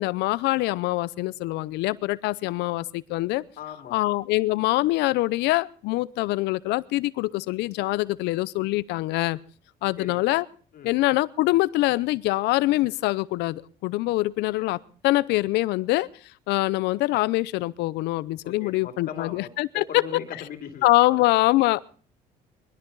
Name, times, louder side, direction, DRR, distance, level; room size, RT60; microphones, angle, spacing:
voice 1, 0.0-3.4 3.9-9.4 9.8-10.5 10.8-16.1 16.5-20.0 20.8-21.8, left 19 dB, 90° left, 19 dB, 0.7 m, -24 dB
voice 2, 3.6-4.0 10.0-10.4 10.7-10.9 18.4-21.2, left 8 dB, 60° left, 6 dB, 2.7 m, -39 dB
21.5 x 13.0 x 4.0 m, 0.42 s
cardioid pair, 110°, 17 cm